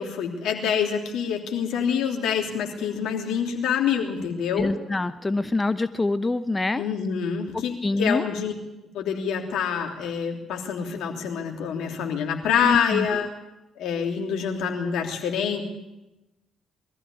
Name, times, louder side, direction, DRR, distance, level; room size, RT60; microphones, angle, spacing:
voice 1, 0.0-4.7 6.7-7.7 8.0-8.5 8.9-13.3 13.8-15.6, left 7 dB, 70° left, 2 dB, 3.2 m, -26 dB
voice 2, 4.6-6.8 7.5-8.2 12.6-13.1, left 2 dB, 25° left, 12 dB, 0.8 m, -25 dB
22.0 x 14.0 x 8.7 m, 1.0 s
hypercardioid pair, 50°, 0 cm